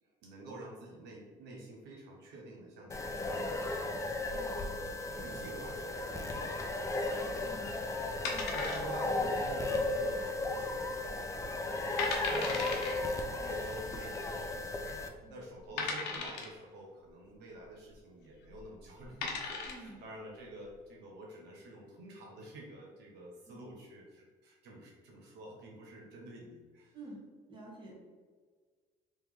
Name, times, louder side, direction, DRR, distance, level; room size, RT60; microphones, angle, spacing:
voice 1, 0.0-4.8 5.1-6.9 8.5-10.9 11.3-14.7 15.3-27.0, right 1 dB, 80° right, -2 dB, 0.9 m, -49 dB
sound 1, 2.9-15.1, left 2 dB, 20° left, 0.4 m, -35 dB
voice 2, 4.3-4.6 7.4-7.8 8.3-8.5 15.2-15.3 19.6-20.0 23.5-23.6 26.9-27.2 27.5-28.0, right 2 dB, 30° right, -4 dB, 1.4 m, -49 dB
sound 2, 8.2-9.2 9.5-9.6 10.2-10.6 11.0-11.1 11.6-11.7 12.0-12.9 14.0-14.1 14.8-14.9 15.8-16.6 18.4-18.6 19.0-19.9, left 4 dB, 85° left, 0.8 m, -37 dB
3.2 x 3.0 x 3.5 m, 1.5 s
cardioid pair, 110°, 17 cm